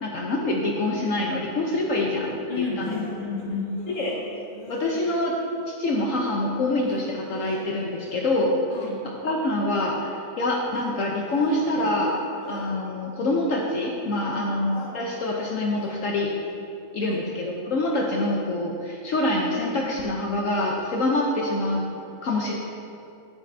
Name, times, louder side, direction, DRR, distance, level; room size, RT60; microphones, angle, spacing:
voice 1, 0.0-2.9 3.9-4.2 4.7-5.3 5.7-8.5 9.0-10.1 10.4-12.2 12.5-16.3 16.9-21.8 22.2-22.5, left 2 dB, 65° left, -1 dB, 1.2 m, -25 dB
voice 2, 2.5-3.8 8.7-9.1 14.2-14.5 17.0-17.3, left 5 dB, 30° left, -2 dB, 1.3 m, -32 dB
dazed and confused voice, 2.8-5.2 6.8-8.4 10.6-12.9 14.7-16.2, left 2 dB, 80° left, 1.6 m, -43 dB
11.0 x 10.0 x 2.7 m, 2.5 s
omnidirectional pair, 1.5 m